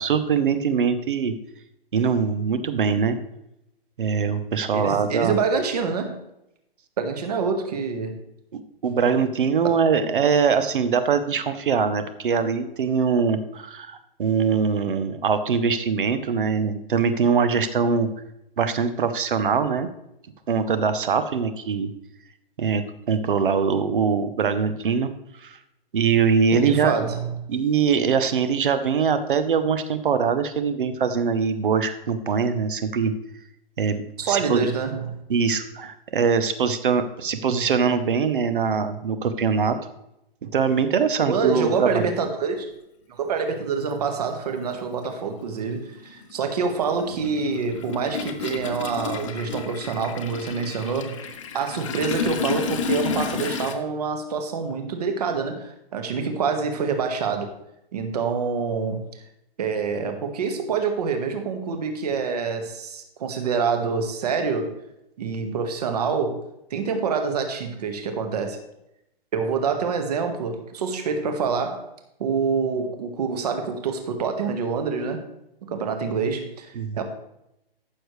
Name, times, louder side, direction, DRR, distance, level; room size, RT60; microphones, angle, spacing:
voice 1, 0.0-1.3 1.9-3.2 4.0-5.4 8.5-18.1 18.6-19.9 20.5-21.9 22.6-25.1 25.4-25.6 25.9-27.0 27.5-33.1 33.8-34.7 35.3-39.8 40.5-42.1 76.8-77.0, right 6 dB, 60° right, 11 dB, 1.0 m, -22 dB
voice 2, 4.7-6.2 7.0-8.2 26.5-27.3 34.2-35.1 41.2-42.7 43.1-57.5 57.9-59.0 59.6-64.7 65.2-66.4 66.7-68.6 69.3-71.9 72.2-75.2 75.7-77.0, right 5 dB, 40° right, 5 dB, 1.5 m, -26 dB
Toilet flush, 43.3-43.4 44.6-44.8 45.1-53.7, left 5 dB, 30° left, 0.9 m, -31 dB
14.5 x 6.6 x 3.2 m, 0.84 s
hypercardioid pair, 165°, 30 cm